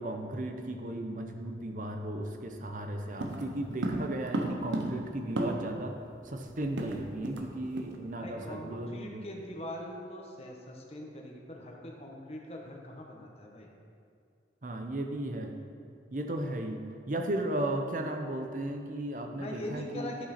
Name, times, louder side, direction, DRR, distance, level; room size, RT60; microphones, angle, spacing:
voice 1, 0.0-6.0 6.2-9.2 14.6-15.6 16.1-20.3, right 1 dB, 45° right, 4 dB, 0.7 m, -35 dB
sound 1, 3.2-5.9 6.1-6.2 6.5-7.5 7.8-8.0 8.4-8.6, right 1 dB, 85° right, 0.8 m, -34 dB
voice 2, 8.2-13.7 19.4-20.3, left 1 dB, 35° left, 0 dB, 1.1 m, -42 dB
11.0 x 5.6 x 4.2 m, 2.4 s
head